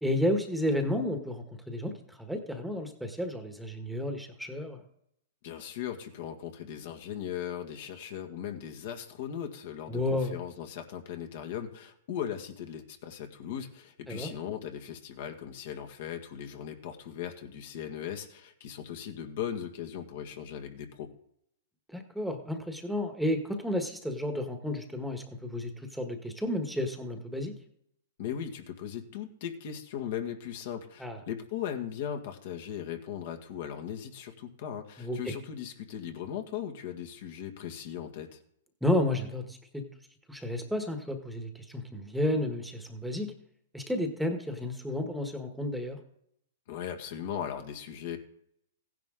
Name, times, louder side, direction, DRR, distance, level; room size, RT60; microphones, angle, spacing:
voice 1, 0.0-4.8 9.9-10.3 14.1-14.3 21.9-27.5 31.0-31.2 35.0-35.3 38.8-39.8 40.3-43.3 43.7-46.0, left 1 dB, ahead, 5 dB, 1.4 m, -32 dB
voice 2, 5.4-21.1 28.2-38.4 46.7-48.2, left 9 dB, 55° left, 5 dB, 1.8 m, -38 dB
15.5 x 10.5 x 3.8 m, 0.73 s
hypercardioid pair, 140°, 0 cm